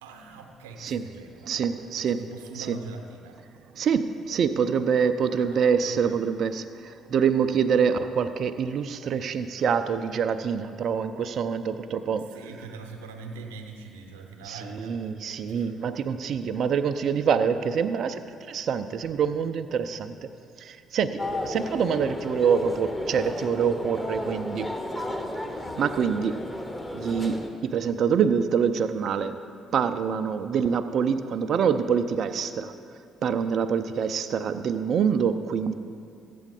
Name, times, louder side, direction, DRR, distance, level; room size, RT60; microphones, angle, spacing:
voice 1, 0.0-3.4 5.4-6.3 12.2-15.7, right 4 dB, 80° right, 4 dB, 0.9 m, -43 dB
voice 2, 1.5-2.3 2.5-2.8 3.7-12.4 14.5-20.3 20.6-24.7 25.8-26.4 26.9-29.4 29.7-32.7 33.2-35.7, right 7 dB, 55° right, 10 dB, 0.5 m, -26 dB
sound 1, 21.2-27.5, left 1 dB, 15° left, 1.2 m, -33 dB
14.0 x 8.4 x 3.7 m, 2.4 s
hypercardioid pair, 50°, 0 cm